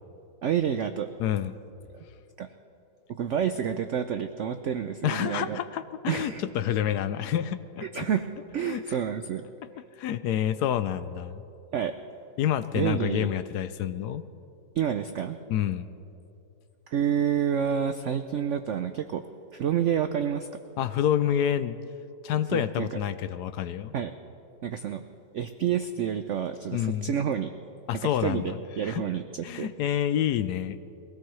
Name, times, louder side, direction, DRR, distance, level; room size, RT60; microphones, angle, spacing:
voice 1, 0.4-1.1 2.4-2.5 3.1-5.6 6.1-6.4 7.9-9.5 11.7-11.9 12.7-13.3 14.8-15.4 16.9-19.2 19.5-20.5 22.5-22.9 23.9-24.1 24.6-25.0 25.3-27.5 28.0-29.7, right 8 dB, 85° right, 8 dB, 0.6 m, -29 dB
voice 2, 1.2-1.6 5.0-8.1 8.6-9.0 10.0-11.4 12.4-14.2 15.5-15.9 20.8-21.8 22.2-23.9 26.7-27.2 27.9-29.0 29.4-30.8, left 10 dB, 75° left, 12 dB, 1.0 m, -28 dB
22.5 x 17.0 x 3.2 m, 2.8 s
omnidirectional pair, 1.9 m